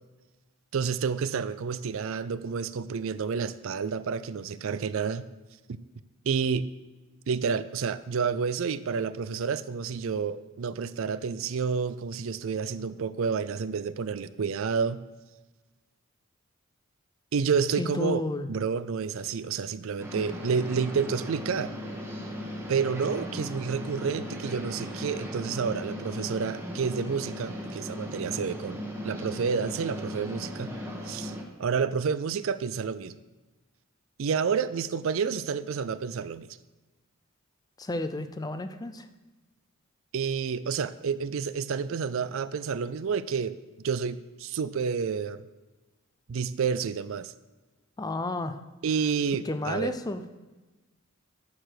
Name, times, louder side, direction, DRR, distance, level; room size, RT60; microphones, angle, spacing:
voice 1, 0.7-5.3 6.3-6.7 7.3-15.0 17.3-18.2 18.5-21.7 22.7-30.7 31.0-33.2 34.2-36.5 40.1-43.5 43.8-45.4 46.3-47.3 48.8-49.9, right 6 dB, 65° right, 15 dB, 0.4 m, -29 dB
voice 2, 17.8-18.5 37.8-39.1 48.0-48.6 49.5-50.2, left 2 dB, 20° left, 10 dB, 0.5 m, -32 dB
sound 1, 20.0-31.4, equal, 10° right, 1.3 m, -37 dB
11.5 x 4.8 x 6.5 m, 1.2 s
head